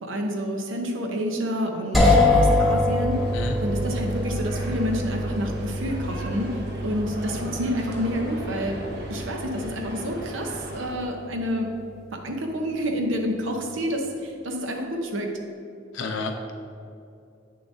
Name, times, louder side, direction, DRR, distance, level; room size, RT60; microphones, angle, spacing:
voice 1, 0.0-3.2 3.6-8.8 9.1-11.7 12.2-15.3, equal, 80° right, 2 dB, 0.8 m, -29 dB
sound 1, 1.9-11.7, left 2 dB, ahead, 0.8 m, -25 dB
sound 2, 3.1-10.9, right 1 dB, 55° right, 1.0 m, -37 dB
voice 2, 15.9-16.5, left 3 dB, 75° left, 4 dB, 0.6 m, -30 dB
8.6 x 6.7 x 2.7 m, 2.5 s
head